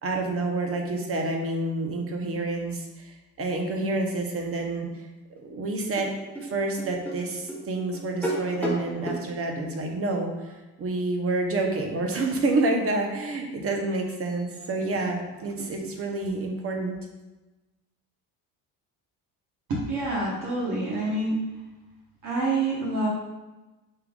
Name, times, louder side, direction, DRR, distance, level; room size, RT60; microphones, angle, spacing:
voice 1, 0.0-4.9 5.3-6.1 6.4-17.0, right 2 dB, 35° right, 2 dB, 0.9 m, -28 dB
sound 1, 5.4-5.5 5.9-9.2, equal, 5° left, 0.9 m, -32 dB
voice 2, 19.7-21.4 22.2-23.1, right 2 dB, 55° right, -6 dB, 1.2 m, -27 dB
5.5 x 3.5 x 2.4 m, 1.1 s
cardioid pair, 105°, 38 cm